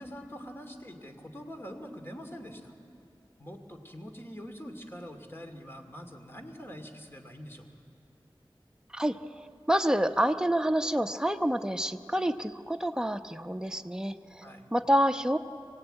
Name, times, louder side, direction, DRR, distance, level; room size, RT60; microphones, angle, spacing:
voice 1, 0.0-2.7 3.4-7.7 14.4-14.7, equal, 25° left, 4 dB, 2.5 m, -44 dB
voice 2, 9.7-14.4 14.7-15.4, equal, 10° right, 7 dB, 0.9 m, -27 dB
25.0 x 17.5 x 9.0 m, 2.5 s
wide cardioid pair, 40°, 9 cm